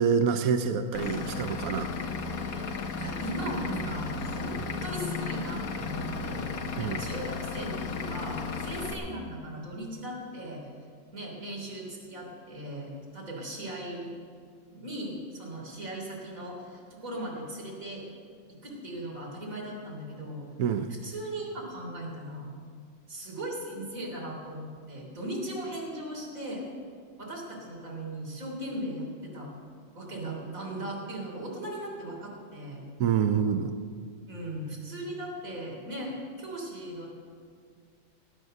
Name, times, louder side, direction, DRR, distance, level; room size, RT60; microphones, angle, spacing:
voice 1, 0.0-1.9 6.8-7.0 20.6-20.9 33.0-33.7, right 7 dB, 70° right, 8 dB, 0.8 m, -26 dB
Vehicle / Engine, 0.9-8.9, left 4 dB, 55° left, 1.2 m, -34 dB
voice 2, 3.0-4.6 4.8-10.7 11.1-14.1 14.7-18.0 18.5-20.4 21.0-22.5 23.1-26.6 27.2-29.5 30.0-32.8 34.3-37.1, right 1 dB, 40° right, -2 dB, 3.7 m, -38 dB
18.0 x 9.3 x 6.5 m, 2.2 s
omnidirectional pair, 2.1 m